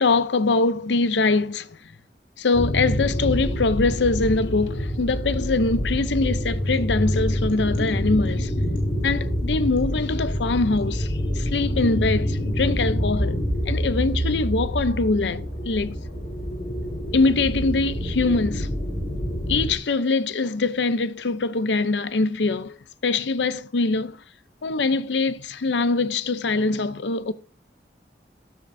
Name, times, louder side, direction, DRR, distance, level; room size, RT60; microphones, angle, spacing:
voice 1, 0.0-1.7 2.4-8.5 9.0-13.4 13.7-16.0 17.1-18.7 19.5-22.8 23.0-24.2 24.6-27.3, left 3 dB, 90° left, 0.7 m, -23 dB
sound 1, 2.5-19.7, equal, 50° left, 4.6 m, -26 dB
13.0 x 12.0 x 2.7 m
head